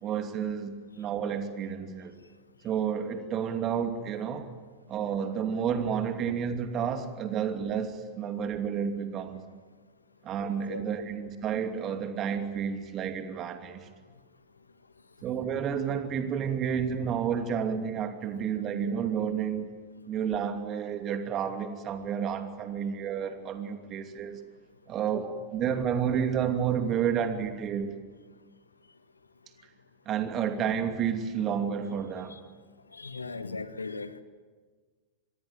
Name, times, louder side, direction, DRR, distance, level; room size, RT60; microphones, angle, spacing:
voice 1, 0.0-2.1 2.6-4.5 4.9-9.4 10.2-13.9 15.2-19.7 20.1-24.4 24.9-27.9 30.1-32.4, right 7 dB, 30° right, 7 dB, 2.7 m, -30 dB
voice 2, 10.7-11.1 32.3-32.4 32.9-34.2, left 3 dB, 80° left, 13 dB, 1.4 m, -38 dB
25.5 x 21.5 x 9.0 m, 1.5 s
figure-of-eight pair, 90°, 0 cm